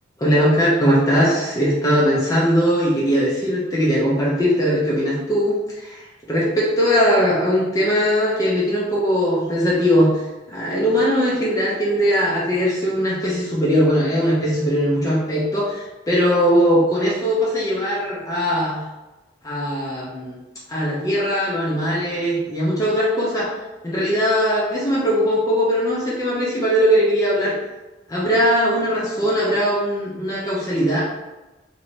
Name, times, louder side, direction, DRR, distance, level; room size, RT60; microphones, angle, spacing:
voice 1, 0.2-10.2 10.5-18.8 19.4-20.4 20.7-23.5 23.8-27.6 28.1-31.0, equal, 20° left, -7 dB, 0.5 m, -20 dB
3.1 x 3.0 x 2.7 m, 1.1 s
head